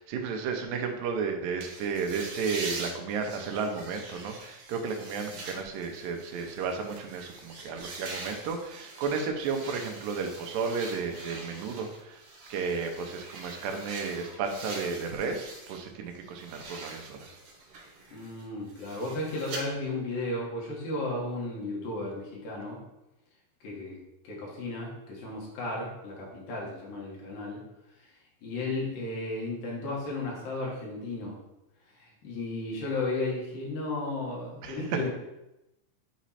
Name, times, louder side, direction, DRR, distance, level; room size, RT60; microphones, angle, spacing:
voice 1, 0.0-12.2 12.5-17.4 34.6-35.1, right 5 dB, 90° right, 4 dB, 2.5 m, -33 dB
sound 1, 1.6-15.8 16.1-19.6, right 3 dB, 60° right, 1.7 m, -44 dB
voice 2, 18.1-22.8 23.6-24.0 24.2-27.6 28.4-31.3 31.9-35.1, left 2 dB, 85° left, -3 dB, 3.3 m, -34 dB
8.1 x 3.1 x 4.2 m, 0.92 s
omnidirectional pair, 3.8 m